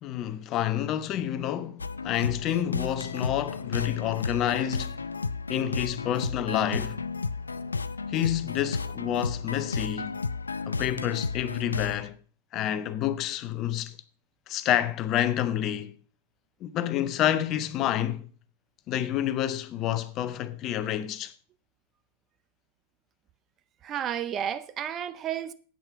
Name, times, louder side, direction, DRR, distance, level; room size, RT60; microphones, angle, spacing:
voice 1, 0.0-5.1 5.5-7.0 8.1-10.2 10.7-12.1 12.5-14.0 14.5-15.9 16.6-18.3 18.9-21.3, left 11 dB, 35° left, 0.8 m, -28 dB
sound 1, 1.8-12.1, left 4 dB, 75° left, 0.5 m, -33 dB
voice 2, 23.8-25.5, right 9 dB, 30° right, 0.6 m, -32 dB
8.8 x 8.5 x 5.9 m
figure-of-eight pair, 90°, 0 cm